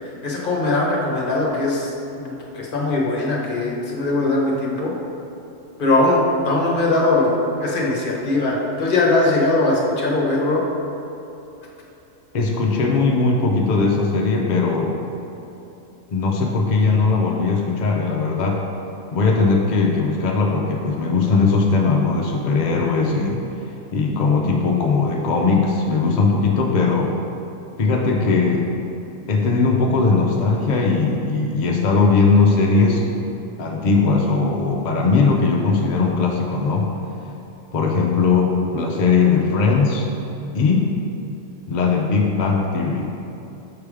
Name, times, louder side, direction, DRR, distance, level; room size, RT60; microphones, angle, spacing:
voice 1, 0.0-1.9 2.2-4.9 5.8-7.3 7.6-10.6, left 2 dB, 45° left, -2 dB, 1.0 m, -20 dB
voice 2, 12.3-14.9 16.1-18.6 19.1-23.4 23.9-27.1 27.8-28.7 29.3-33.0 33.6-36.9 37.7-40.1 40.5-40.9 41.7-43.3, left 4 dB, 65° left, -1 dB, 0.4 m, -19 dB
6.8 x 3.3 x 4.8 m, 2.9 s
omnidirectional pair, 1.5 m